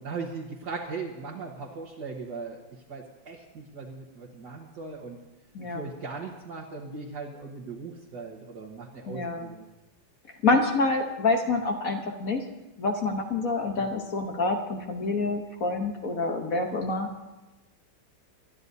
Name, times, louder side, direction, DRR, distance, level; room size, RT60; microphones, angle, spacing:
voice 1, 0.0-5.2 5.7-9.7 13.6-13.8, right 4 dB, 65° right, -4 dB, 1.9 m, -39 dB
voice 2, 9.1-9.5 10.4-12.4 12.8-17.1, left 3 dB, 50° left, 3 dB, 1.3 m, -27 dB
27.0 x 12.5 x 2.7 m, 1.1 s
omnidirectional pair, 2.0 m